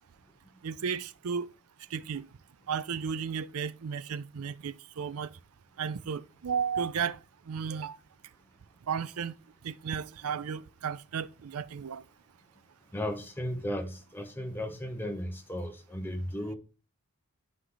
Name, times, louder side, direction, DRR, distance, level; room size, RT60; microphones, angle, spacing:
voice 1, 0.6-1.5 1.9-2.3 2.7-5.3 5.8-7.2 7.5-8.0 8.9-9.3 9.6-12.0, right 6 dB, 90° right, 0.5 m, -34 dB
voice 2, 12.9-16.6, equal, 10° left, 0.9 m, -35 dB
9.6 x 4.9 x 3.9 m
head